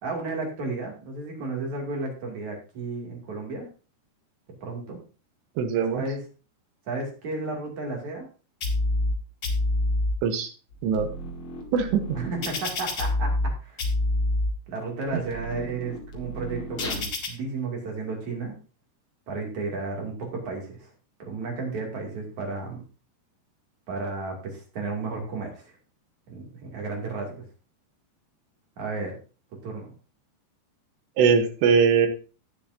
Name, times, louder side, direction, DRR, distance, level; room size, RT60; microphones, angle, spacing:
voice 1, 0.0-3.7 4.6-5.0 5.9-6.2 6.9-8.3 12.1-13.3 13.6-13.8 14.7-18.6 19.3-20.9 21.2-22.8 23.9-25.7 26.3-27.4 28.8-29.1 29.6-29.9, right 3 dB, 45° right, 0 dB, 3.5 m, -33 dB
voice 2, 5.6-6.0 10.2-10.5 10.8-11.1 11.7-12.2 31.2-32.1, right 6 dB, 75° right, 7 dB, 3.2 m, -21 dB
sound 1, 8.6-9.1 9.4-10.1 10.7-13.5 13.8-14.5 15.1-17.3, left 2 dB, 55° left, 1.4 m, -28 dB
17.5 x 7.0 x 2.7 m, 0.36 s
omnidirectional pair, 5.3 m